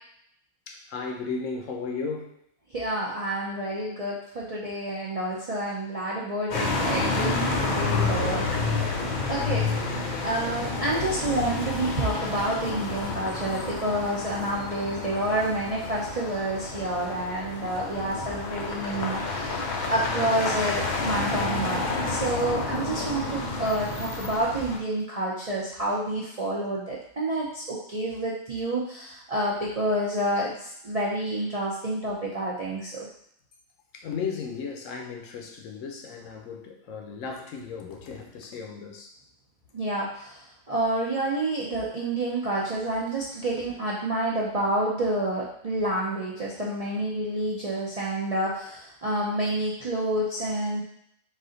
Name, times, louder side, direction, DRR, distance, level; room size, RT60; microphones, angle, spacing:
voice 1, 0.7-2.3 9.3-9.5 33.9-39.1, left 5 dB, 70° left, 3 dB, 0.9 m, -35 dB
voice 2, 2.7-8.5 9.3-9.7 10.2-19.6 19.9-33.1 39.7-50.8, right 1 dB, 45° right, -6 dB, 0.4 m, -29 dB
sound 1, 6.5-24.8, left 3 dB, 55° left, 0.5 m, -29 dB
4.2 x 2.6 x 3.8 m, 0.72 s
omnidirectional pair, 1.5 m